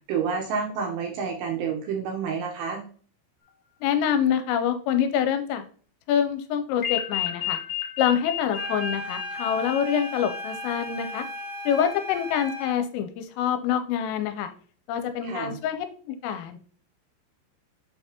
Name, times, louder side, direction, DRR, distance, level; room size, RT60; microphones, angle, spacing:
voice 1, 0.1-2.8 15.2-15.6, right 6 dB, 80° right, 1 dB, 2.4 m, -29 dB
voice 2, 3.8-5.6 6.1-7.6 8.0-11.3 11.7-14.5 14.9-16.6, left 8 dB, 85° left, 8 dB, 3.2 m, -26 dB
sound 1, 6.8-10.9, left 13 dB, 65° left, 2.1 m, -32 dB
sound 2, 8.5-12.8, equal, 60° right, 0.9 m, -36 dB
7.9 x 5.7 x 2.9 m, 0.44 s
omnidirectional pair, 5.9 m